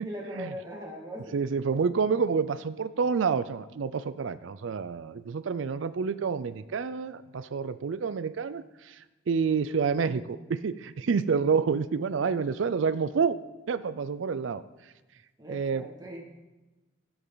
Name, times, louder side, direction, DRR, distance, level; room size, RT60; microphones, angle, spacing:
voice 1, 0.0-1.4 15.4-16.2, equal, 20° right, -2 dB, 2.1 m, -39 dB
voice 2, 1.3-13.4 13.7-14.6 15.5-15.9, right 5 dB, 85° right, 14 dB, 0.4 m, -28 dB
15.5 x 7.9 x 4.0 m, 1.1 s
head